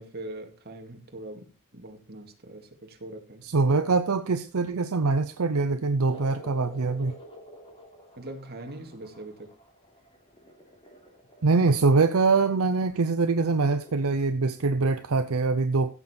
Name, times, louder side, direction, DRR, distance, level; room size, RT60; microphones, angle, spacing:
voice 1, 0.0-1.4 1.7-3.4 8.2-9.5, right 1 dB, 50° right, 2.2 m, -41 dB
voice 2, 3.4-7.1 11.4-15.9, right 3 dB, 75° right, 0.7 m, -23 dB
sound 1, 6.0-14.1, equal, 25° left, 3.2 m, -50 dB
15.0 x 6.9 x 4.4 m
head